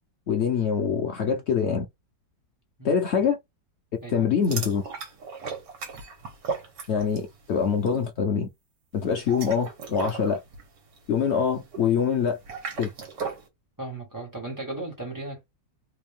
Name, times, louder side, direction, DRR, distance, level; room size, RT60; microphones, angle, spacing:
voice 1, 0.3-1.8 2.8-3.4 4.1-4.8 6.9-8.5 8.9-10.4 11.1-12.4 12.8-12.9, left 6 dB, 90° left, 0.5 m, -24 dB
voice 2, 2.8-3.3 4.0-4.3 7.0-7.1 13.8-15.5, right 2 dB, 10° right, 1.7 m, -37 dB
sound 1, 4.4-7.4 7.6-7.9 9.1-13.5, right 5 dB, 70° right, 1.7 m, -37 dB
3.5 x 2.6 x 3.5 m
omnidirectional pair, 2.0 m